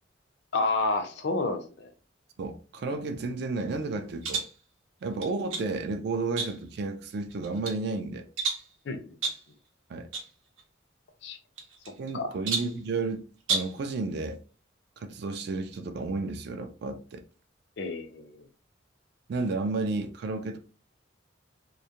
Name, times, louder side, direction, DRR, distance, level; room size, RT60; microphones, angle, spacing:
voice 1, 0.5-1.9 8.9-9.2 11.2-11.4 12.1-12.3 17.8-18.3, left 3 dB, 60° left, 0.4 m, -29 dB
voice 2, 2.4-4.5 5.0-8.3 9.9-10.1 12.0-13.2 13.5-14.4 15.0-17.2 19.3-20.6, right 3 dB, 55° right, 0.3 m, -32 dB
sound 1, 4.2-4.6 5.2-5.7 6.4-6.8 7.3-7.8 8.4-8.7 9.2-9.5 10.1-10.3 10.6-10.7 11.6-12.1 12.5-12.8 13.4-13.8, right 4 dB, 85° right, 0.7 m, -32 dB
2.3 x 2.1 x 2.7 m
head